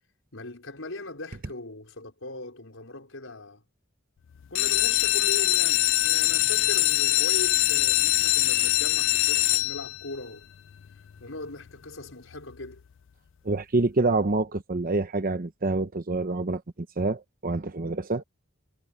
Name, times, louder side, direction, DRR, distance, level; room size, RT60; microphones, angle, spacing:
voice 1, 0.3-3.6 4.5-10.5 11.2-12.8, left 2 dB, 85° left, 5.2 m, -39 dB
sound 1, 4.4-10.2 10.8-11.3 11.7-11.8 12.0-12.1 12.5-12.7, left 20 dB, 65° left, 0.4 m, -23 dB
voice 2, 13.4-16.6 17.0-18.2, right 3 dB, 45° right, 0.9 m, -26 dB
head